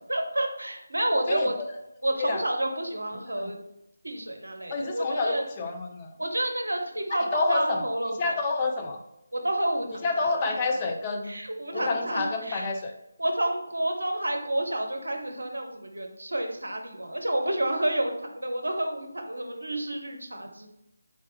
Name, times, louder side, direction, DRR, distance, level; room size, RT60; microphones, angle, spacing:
voice 1, 0.1-1.5 2.0-3.6 4.0-5.4 6.2-8.3 9.3-10.1 10.4-10.5 11.3-12.7 13.2-20.7, right 1 dB, 70° right, 4 dB, 0.7 m, -29 dB
voice 2, 1.1-1.7 2.2-2.4 3.3-3.5 4.7-6.1 7.3-9.0 10.0-11.4 11.7-12.9, left 3 dB, 20° left, 2 dB, 0.4 m, -29 dB
3.6 x 3.2 x 3.1 m, 0.85 s
figure-of-eight pair, 155°, 0 cm